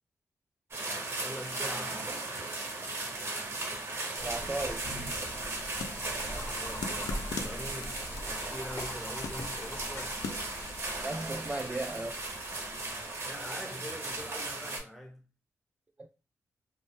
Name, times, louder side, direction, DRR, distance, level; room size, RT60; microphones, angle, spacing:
sound 1, 0.7-14.8, right 2 dB, 50° right, 0.9 m, -37 dB
voice 1, 1.2-2.1 6.3-7.0 7.4-10.3 13.2-15.3, equal, ahead, 0.7 m, -44 dB
sound 2, 4.2-13.5, left 1 dB, 40° left, 0.7 m, -43 dB
voice 2, 4.2-4.9 10.3-10.4 11.0-12.2 16.0-16.1, right 2 dB, 20° right, 0.3 m, -36 dB
sound 3, 5.5-11.3, left 5 dB, 85° left, 0.3 m, -43 dB
2.1 x 2.0 x 2.9 m
cardioid pair, 70°, 6 cm